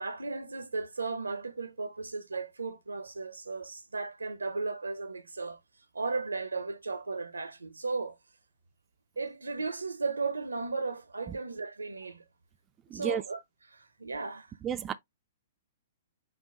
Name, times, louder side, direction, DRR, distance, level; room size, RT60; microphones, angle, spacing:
voice 1, 0.0-5.6 5.9-8.2 9.2-12.2 12.9-13.4 13.7-14.5, right 4 dB, 80° right, 0.7 m, -35 dB
voice 2, 12.9-13.2 14.6-14.9, right 8 dB, 20° right, 0.3 m, -32 dB
5.5 x 2.2 x 3.7 m
figure-of-eight pair, 115°, 0 cm